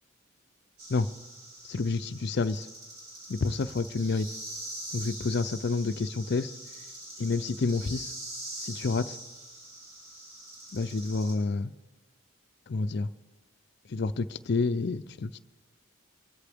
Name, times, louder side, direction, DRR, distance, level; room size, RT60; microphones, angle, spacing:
sound 1, 0.8-11.3, right 1 dB, 90° right, 5.0 m, -43 dB
voice 1, 1.6-2.7 3.3-4.3 4.9-6.5 7.2-8.1 8.6-9.2 10.7-11.7 12.7-13.1 13.9-15.4, left 3 dB, 50° left, 14 dB, 0.4 m, -29 dB
23.5 x 13.0 x 3.5 m, 1.2 s
head